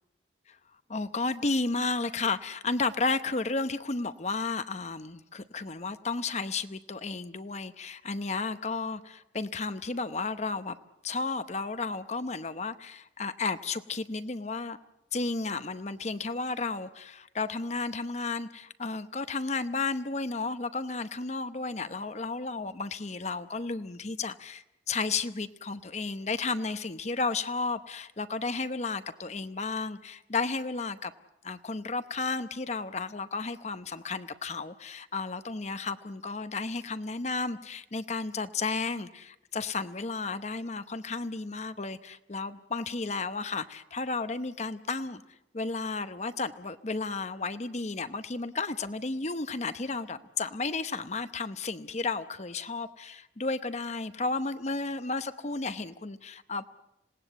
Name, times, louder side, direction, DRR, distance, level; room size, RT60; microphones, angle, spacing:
voice 1, 0.9-10.8 11.0-14.8 15.1-31.1 31.4-45.2 45.5-56.7, left 3 dB, 40° left, 11 dB, 0.9 m, -33 dB
26.5 x 18.5 x 8.0 m, 0.87 s
head